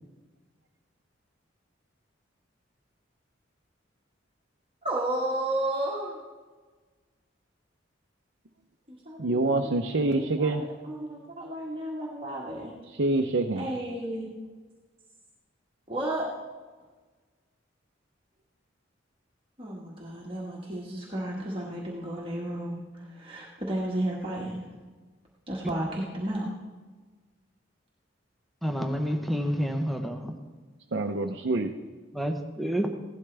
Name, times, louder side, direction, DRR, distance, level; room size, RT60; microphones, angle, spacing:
voice 1, 4.8-6.2 8.9-12.7 13.1-13.2 13.5-14.3 15.9-16.3 19.6-24.6 25.5-26.5, right 1 dB, 30° right, -4 dB, 1.6 m, -33 dB
voice 2, 9.2-10.6 13.0-13.6 30.9-31.7, right 2 dB, 60° right, 3 dB, 0.7 m, -26 dB
voice 3, 28.6-30.3 32.1-32.9, equal, ahead, 4 dB, 0.9 m, -29 dB
16.5 x 12.0 x 3.4 m, 1.4 s
head